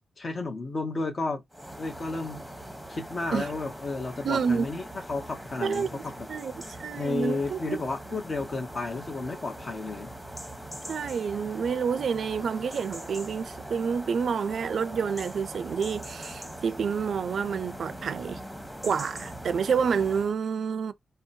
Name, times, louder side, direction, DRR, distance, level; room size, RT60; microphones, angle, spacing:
voice 1, 0.2-1.4 1.8-2.4 2.9-4.8 5.1-6.3 7.0-10.1, left 3 dB, 50° left, 0.8 m, -32 dB
sound 1, 1.5-20.4, right 1 dB, 5° left, 0.9 m, -41 dB
voice 2, 4.2-4.7 5.6-7.8 10.9-18.4 18.8-20.9, right 6 dB, 70° right, 0.4 m, -29 dB
2.8 x 2.0 x 2.6 m
cardioid pair, 75°, 0 cm